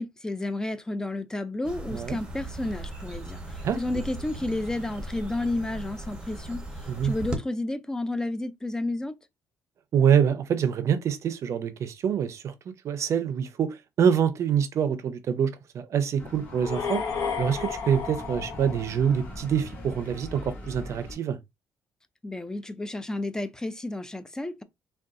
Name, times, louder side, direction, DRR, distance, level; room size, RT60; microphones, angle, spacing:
voice 1, 0.0-6.6 7.0-9.2 22.2-24.6, left 2 dB, 10° left, 0.3 m, -31 dB
sound 1, 1.6-7.4, right 2 dB, 15° right, 0.8 m, -38 dB
voice 2, 3.6-4.0 6.9-7.1 9.9-12.5 12.8-17.0 17.4-21.4, right 8 dB, 50° right, 0.5 m, -25 dB
sound 2, 16.2-21.1, left 1 dB, 25° left, 1.9 m, -41 dB
sound 3, 16.5-19.5, left 6 dB, 70° left, 0.8 m, -33 dB
3.7 x 2.3 x 2.4 m
cardioid pair, 135°, 6 cm